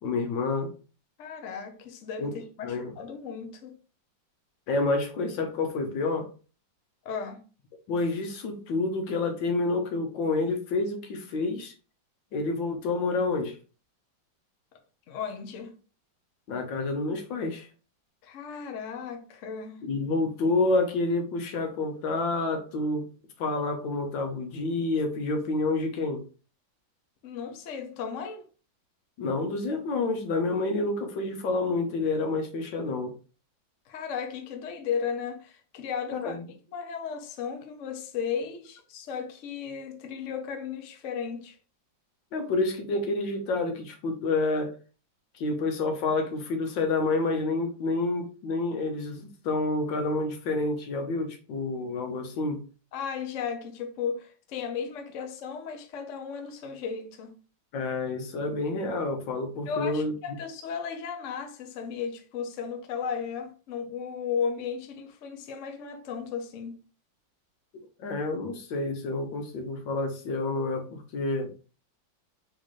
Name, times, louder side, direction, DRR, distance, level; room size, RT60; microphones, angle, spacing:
voice 1, 0.0-0.7 2.2-2.3 2.6-2.9 4.7-6.3 7.9-11.7 12.3-13.5 16.5-17.7 19.8-23.1 23.4-26.2 29.2-33.1 36.1-36.4 42.3-44.8 45.4-52.6 57.7-60.1 68.0-71.5, left 3 dB, 80° left, 1.6 m, -28 dB
voice 2, 1.2-3.7 7.0-7.4 15.1-15.7 18.2-19.8 27.2-28.4 33.9-36.4 36.7-41.6 52.9-57.3 59.7-66.7, left 6 dB, 55° left, 0.9 m, -35 dB
4.1 x 3.8 x 3.1 m
omnidirectional pair, 2.0 m